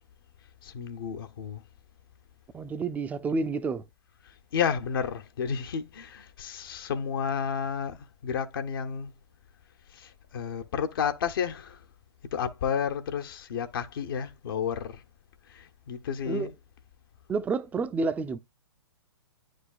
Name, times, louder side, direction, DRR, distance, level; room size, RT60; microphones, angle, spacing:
voice 1, 0.6-1.6 4.3-9.1 9.9-11.8 12.3-15.0 15.5-16.5, left 7 dB, 55° left, 1.0 m, -31 dB
voice 2, 2.5-3.8 16.3-16.5 17.3-18.4, right 4 dB, 10° right, 0.5 m, -29 dB
9.9 x 5.1 x 2.4 m
figure-of-eight pair, 120°, 14 cm